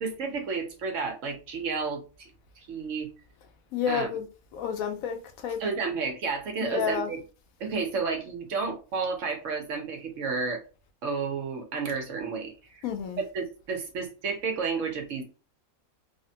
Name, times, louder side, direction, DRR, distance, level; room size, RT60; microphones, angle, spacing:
voice 1, 0.0-2.3 2.7-3.1 3.9-4.1 5.6-7.2 7.6-10.6 11.0-12.8 13.3-15.2, right 4 dB, 65° right, 1.0 m, -31 dB
voice 2, 3.7-4.3 4.5-5.6 6.6-7.1 12.8-13.2, left 7 dB, 80° left, 1.0 m, -30 dB
3.4 x 2.1 x 2.7 m
omnidirectional pair, 1.5 m